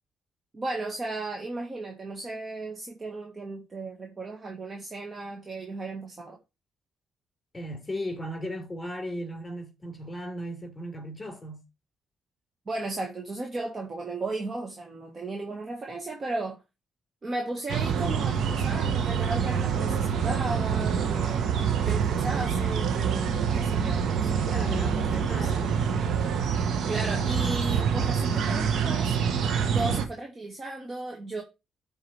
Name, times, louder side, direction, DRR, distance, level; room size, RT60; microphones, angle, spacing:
voice 1, 0.5-6.4 12.7-16.6 17.2-25.5 26.9-29.1 29.7-31.4, right 2 dB, 35° right, 1.7 m, -35 dB
voice 2, 7.5-11.6 24.5-25.8, equal, 20° left, 4.7 m, -36 dB
sound 1, 17.7-30.1, right 7 dB, 70° right, 1.2 m, -26 dB
12.5 x 4.7 x 3.4 m
cardioid pair, 90°, 0 cm